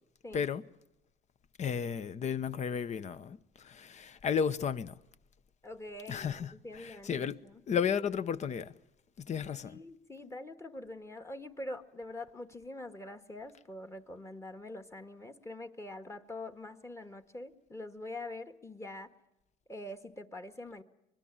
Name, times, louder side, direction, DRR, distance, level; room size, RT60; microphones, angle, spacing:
voice 1, 0.3-0.6 1.6-5.0 6.1-7.4 7.7-8.7 9.2-9.8, left 7 dB, 45° left, 1.0 m, -33 dB
voice 2, 5.6-7.6 9.6-19.1 19.7-20.8, left 1 dB, 15° left, 1.6 m, -44 dB
25.0 x 21.0 x 8.8 m
cardioid pair, 110°, 17 cm